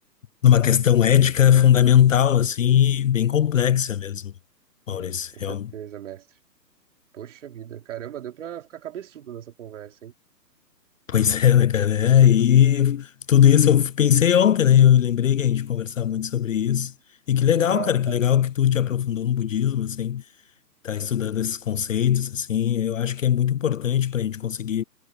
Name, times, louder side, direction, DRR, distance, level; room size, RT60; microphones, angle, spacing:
voice 1, 0.4-4.3 4.9-5.7 11.1-16.9 17.3-20.2 20.8-24.8, left 10 dB, 50° left, 0.5 m, -19 dB
voice 2, 4.9-6.4 7.1-10.1 12.2-12.5 17.5-18.2, right 10 dB, 45° right, 3.3 m, -38 dB
hypercardioid pair, 150°, 50 cm